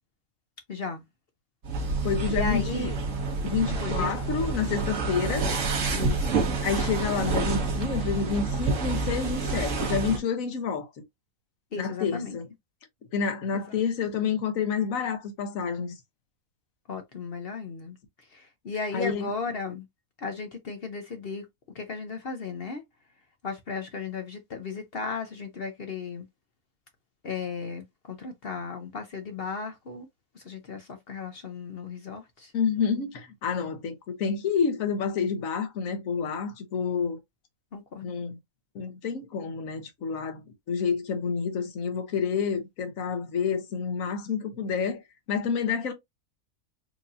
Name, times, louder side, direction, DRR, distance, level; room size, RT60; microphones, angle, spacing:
voice 1, 0.7-1.0 2.3-3.0 3.8-4.1 6.0-6.5 11.7-12.4 13.5-13.8 16.9-18.0 18.3-19.9 20.2-21.5 21.7-22.8 23.4-26.3 27.2-30.1 30.3-32.5 37.7-38.1, left 4 dB, 50° left, 0.8 m, -35 dB
sound 1, 1.6-10.2, right 3 dB, 60° right, 1.5 m, -28 dB
voice 2, 2.0-2.9 3.4-5.5 6.6-10.9 11.8-12.4 13.1-15.9 18.9-19.3 32.5-37.2 38.0-38.4 38.7-40.4 40.7-45.0 45.3-45.9, left 6 dB, 70° left, 1.4 m, -29 dB
4.6 x 2.6 x 2.6 m
omnidirectional pair, 1.5 m